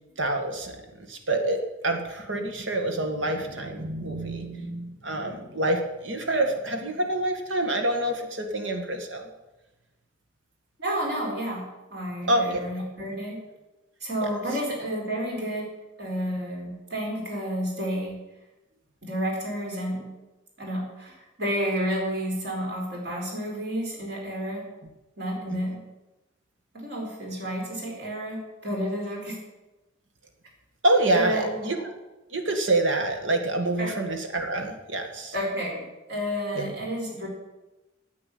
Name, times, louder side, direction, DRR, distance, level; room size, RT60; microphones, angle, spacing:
voice 1, 0.2-0.8 1.1-1.6 1.8-9.3 12.3-12.6 25.5-25.6 30.8-31.8 32.3-35.3 36.6-36.7, right 1 dB, 90° right, 5 dB, 2.0 m, -26 dB
voice 2, 10.8-13.4 14.0-15.7 16.0-18.2 19.0-20.1 20.6-24.6 25.2-25.8 26.7-29.3 31.1-31.9 33.8-34.0 35.3-37.3, equal, 60° right, -1 dB, 4.5 m, -31 dB
10.0 x 8.6 x 8.7 m, 1.0 s
head